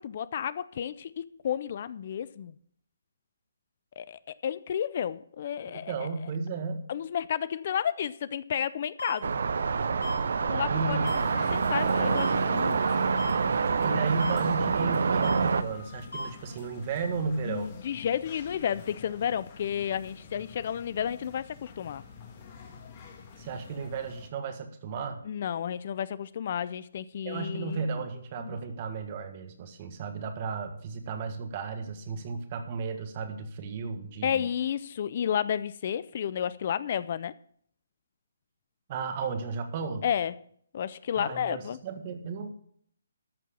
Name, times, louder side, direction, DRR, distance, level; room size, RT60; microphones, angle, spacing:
voice 1, 0.0-2.5 4.0-6.1 6.9-9.3 10.4-12.8 13.8-14.0 17.4-22.0 25.2-27.9 28.4-28.6 34.2-37.3 40.0-40.3 40.7-41.8, left 9 dB, 45° left, 0.4 m, -32 dB
voice 2, 5.7-6.9 10.7-11.2 13.8-17.7 23.4-25.2 27.2-34.4 38.9-40.0 41.2-42.5, right 4 dB, 35° right, 1.6 m, -34 dB
sound 1, 9.0-9.1 10.0-10.1 11.0-11.2 12.2-12.3 13.2-13.3 14.2-14.3 15.2-15.3 16.1-16.2, left 1 dB, 90° left, 4.1 m, -34 dB
sound 2, 9.2-15.6, right 5 dB, 65° right, 0.8 m, -26 dB
sound 3, 11.0-24.3, left 6 dB, 30° left, 2.1 m, -48 dB
13.5 x 4.6 x 8.4 m
hypercardioid pair, 150°, 0 cm